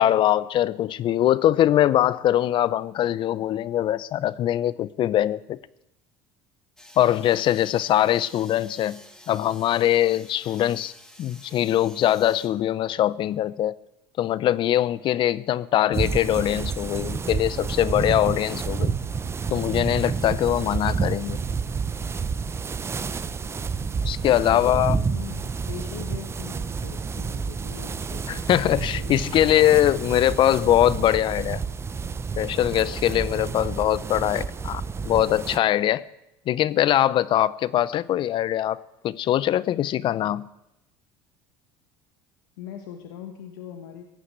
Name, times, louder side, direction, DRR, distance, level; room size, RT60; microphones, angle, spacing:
voice 1, 0.0-5.6 7.0-9.0 9.3-10.9 11.2-13.7 14.2-18.9 19.5-21.4 24.0-25.0 28.3-31.6 32.4-36.0 36.5-40.5, left 12 dB, 50° left, 0.7 m, -22 dB
sound 1, 6.8-12.5, left 1 dB, 5° left, 2.8 m, -49 dB
sound 2, 15.9-35.6, right 5 dB, 25° right, 0.7 m, -29 dB
voice 2, 24.3-28.7 28.9-30.4 42.6-44.1, left 9 dB, 85° left, 1.5 m, -41 dB
16.5 x 9.6 x 8.1 m
supercardioid pair, 100°, 11 cm